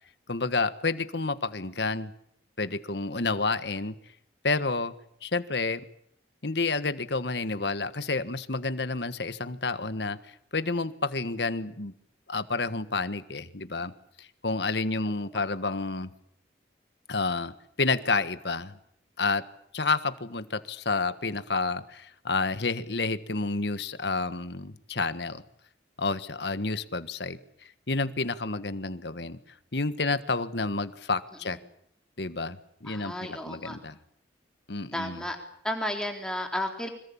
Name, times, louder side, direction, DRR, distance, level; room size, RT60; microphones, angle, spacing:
voice 1, 0.3-2.1 2.6-4.0 4.4-4.9 5.2-5.8 6.4-11.9 12.3-13.9 14.2-16.1 17.1-17.5 17.8-18.8 19.2-19.4 19.7-25.4 26.0-29.4 29.7-31.6 32.2-34.0 34.7-35.2, left 3 dB, 65° left, 12 dB, 1.5 m, -30 dB
voice 2, 32.9-33.8 34.9-35.4 35.6-36.9, left 1 dB, 5° left, 3 dB, 3.8 m, -33 dB
26.0 x 22.0 x 8.7 m, 0.68 s
head